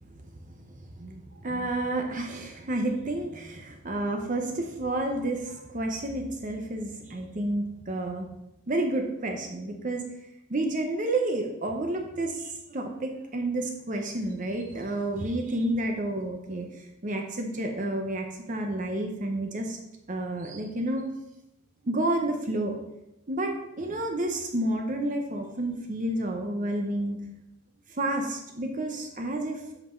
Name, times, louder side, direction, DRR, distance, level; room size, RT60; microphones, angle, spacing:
voice 1, 1.0-8.3 8.7-10.0 10.5-16.7 17.0-19.8 20.1-21.0 21.9-22.8 23.3-27.2 28.0-29.8, right 1 dB, 35° right, 3 dB, 0.7 m, -30 dB
8.0 x 5.6 x 4.4 m, 0.90 s
head